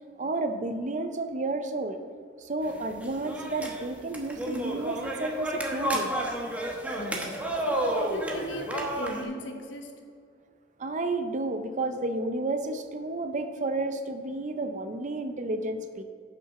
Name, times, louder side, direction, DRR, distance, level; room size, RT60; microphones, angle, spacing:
voice 1, 0.2-2.0 2.4-6.1 10.8-16.0, right 2 dB, 40° right, 8 dB, 0.6 m, -31 dB
sound 1, 2.7-9.2, right 1 dB, 10° right, 1.0 m, -31 dB
voice 2, 7.0-7.4 7.6-9.9, left 1 dB, 80° left, 4 dB, 1.1 m, -37 dB
7.6 x 6.1 x 5.8 m, 2.2 s
head